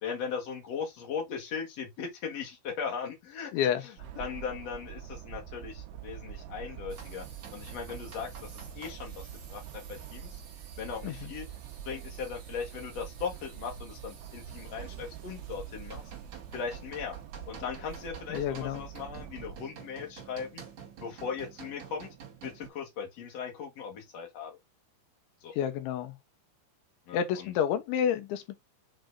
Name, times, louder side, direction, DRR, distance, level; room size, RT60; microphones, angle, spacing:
voice 1, 0.0-3.5 4.2-7.2 7.5-9.6 9.9-10.4 10.8-11.4 11.8-16.0 16.5-17.1 17.5-20.6 21.0-22.1 22.4-24.6 25.4-25.5 27.1-27.2, left 6 dB, 65° left, 1.6 m, -38 dB
voice 2, 3.5-3.8 11.0-11.3 18.3-18.8 25.5-26.2 27.1-28.6, left 9 dB, 85° left, 3.5 m, -29 dB
sound 1, 4.0-19.6, right 10 dB, 80° right, 3.0 m, -45 dB
sound 2, 6.9-22.7, right 7 dB, 45° right, 2.9 m, -50 dB
7.7 x 3.4 x 3.9 m
omnidirectional pair, 5.2 m